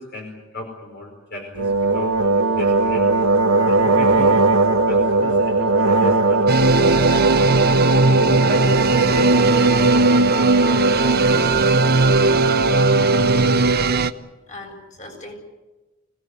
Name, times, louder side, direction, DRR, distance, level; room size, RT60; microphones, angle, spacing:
voice 1, 0.0-3.1 3.7-4.4 4.9-9.3 10.7-10.8, left 1 dB, 55° left, 1 dB, 4.9 m, -34 dB
sound 1, 1.6-13.8, right 3 dB, 90° right, 1.6 m, -19 dB
sound 2, 6.5-14.1, right 3 dB, 50° right, 1.0 m, -18 dB
voice 2, 12.9-13.6 14.5-15.3, left 2 dB, 35° left, 2 dB, 7.5 m, -41 dB
25.0 x 18.5 x 9.8 m, 1.1 s
head